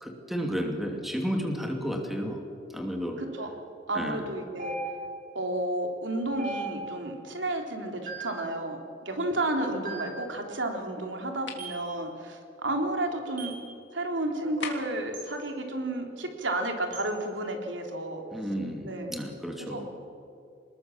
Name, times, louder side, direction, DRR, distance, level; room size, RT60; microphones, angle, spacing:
voice 1, 0.0-2.4 2.7-3.2 3.9-4.3 18.3-19.9, equal, ahead, 2 dB, 2.6 m, -32 dB
voice 2, 3.2-3.5 3.9-4.8 5.3-13.5 13.9-18.2 18.8-19.2 19.7-19.8, right 1 dB, 80° right, 3 dB, 3.3 m, -32 dB
sound 1, 4.6-5.3 6.4-7.1 8.1-8.5 9.8-10.3 11.6-11.9 13.4-13.7 15.1-15.3 16.9-17.1, right 2 dB, 45° right, 5.9 m, -38 dB
sound 2, 11.5-11.7 14.6-15.1, left 5 dB, 65° left, 3.1 m, -37 dB
26.5 x 20.5 x 7.1 m, 2.4 s
head